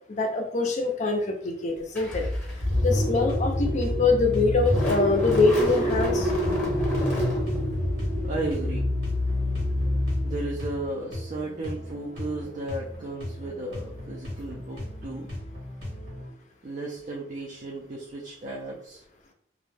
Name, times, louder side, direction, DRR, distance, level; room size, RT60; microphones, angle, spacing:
voice 1, 0.2-2.2 2.8-6.3, left 3 dB, 45° left, 4 dB, 0.5 m, -24 dB
Car / Engine starting, 1.9-10.7, left 1 dB, 10° left, 0.8 m, -26 dB
sound 1, 3.0-16.3, left 1 dB, 75° right, 1.2 m, -38 dB
voice 2, 8.2-8.9 10.2-15.3 16.6-19.0, right 2 dB, 45° right, -3 dB, 0.4 m, -34 dB
2.4 x 2.1 x 3.2 m, 0.66 s
head